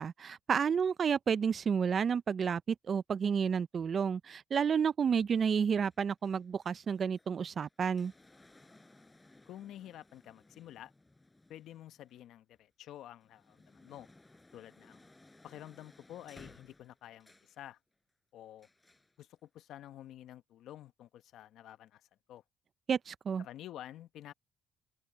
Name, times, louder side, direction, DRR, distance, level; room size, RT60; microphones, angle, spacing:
voice 1, 0.0-2.6 2.9-8.1 22.9-23.4, right 6 dB, 50° right, 0.5 m, -30 dB
sound 1, 5.4-12.6 13.0-17.6 18.6-19.1 20.0-20.1, left 2 dB, 15° left, 4.4 m, -61 dB
voice 2, 9.5-10.9 11.5-14.1 14.5-15.0 15.4-17.8 18.3-18.7 19.2-22.0 22.3-22.4 23.4-24.3, left 12 dB, 70° left, 1.0 m, -50 dB
open air
supercardioid pair, 70°, 0 cm